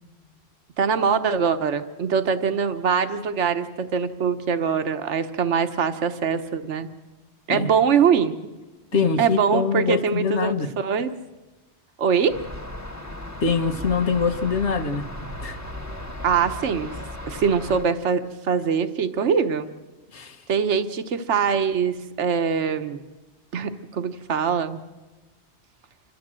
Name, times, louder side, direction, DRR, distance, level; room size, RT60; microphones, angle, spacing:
voice 1, 0.8-6.9 7.5-8.5 9.0-11.1 12.0-12.4 16.2-16.9 17.3-19.7 20.5-23.0 23.5-24.8, right 6 dB, 85° right, 9 dB, 1.3 m, -23 dB
voice 2, 8.9-10.7 13.4-15.0 15.4-15.6 20.1-20.4, left 5 dB, 75° left, 8 dB, 1.5 m, -24 dB
sound 1, 12.3-17.8, left 1 dB, 15° left, 1.1 m, -36 dB
28.5 x 13.0 x 7.5 m, 1.2 s
omnidirectional pair, 1.2 m